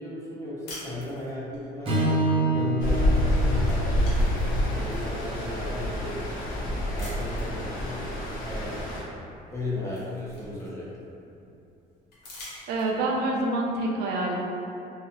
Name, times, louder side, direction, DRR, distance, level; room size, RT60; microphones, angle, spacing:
voice 1, 0.0-6.3 6.9-8.9 9.5-11.1, left 2 dB, 15° left, -7 dB, 0.7 m, -35 dB
sound 1, 0.7-1.7 3.1-3.3 3.6-5.2 5.8-5.9 7.0-7.6 9.0-9.1 9.5-11.0 12.1-13.2, left 1 dB, 75° left, 0.9 m, -45 dB
Strum, 1.9-6.2, right 2 dB, 30° right, 0.6 m, -29 dB
Stream, 2.8-9.0, left 1 dB, 55° left, 0.6 m, -27 dB
voice 2, 12.7-14.4, right 2 dB, 75° right, -1 dB, 0.4 m, -26 dB
2.7 x 2.0 x 2.8 m, 2.7 s
cardioid pair, 110°, 17 cm